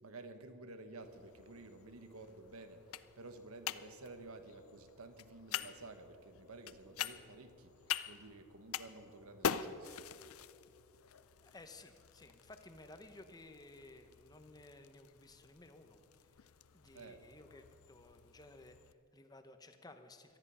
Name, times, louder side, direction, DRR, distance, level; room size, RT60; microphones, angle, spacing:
voice 1, 0.0-7.8 8.0-10.1 16.9-17.2, right 2 dB, 80° right, 8 dB, 1.3 m, -52 dB
sound 1, 1.0-18.9, left 8 dB, 75° left, 0.5 m, -46 dB
voice 2, 11.4-16.0 16.7-20.4, left 2 dB, 20° left, 8 dB, 0.9 m, -56 dB
18.5 x 13.5 x 5.6 m, 2.5 s
head